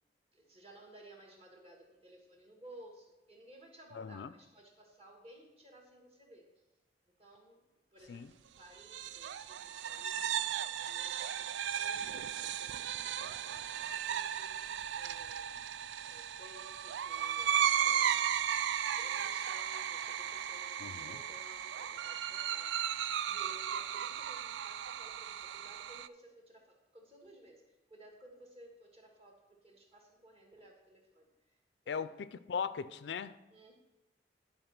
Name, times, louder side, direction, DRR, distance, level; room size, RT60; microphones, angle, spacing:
voice 1, 0.3-6.6 7.1-7.7 7.9-15.6 16.0-18.3 18.8-31.6 31.8-32.3 33.5-33.7, right 1 dB, 35° right, 1 dB, 1.8 m, -58 dB
voice 2, 3.9-4.3 8.1-8.3 20.8-21.2 31.9-33.3, left 6 dB, 75° left, 14 dB, 0.4 m, -39 dB
sound 1, 8.8-26.1, right 9 dB, 90° right, 0.3 m, -35 dB
11.0 x 4.3 x 5.9 m, 1.0 s
head